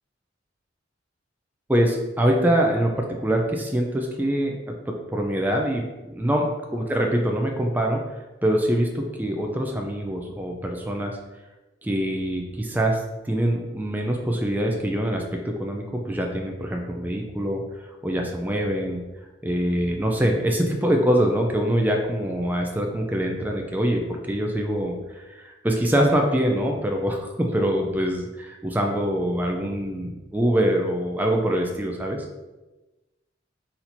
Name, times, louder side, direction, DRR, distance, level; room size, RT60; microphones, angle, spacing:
voice 1, 1.7-8.0 8.4-11.2 11.8-17.6 18.0-19.0 19.4-32.2, right 1 dB, 10° right, 1 dB, 0.4 m, -24 dB
4.2 x 2.6 x 4.2 m, 1.1 s
head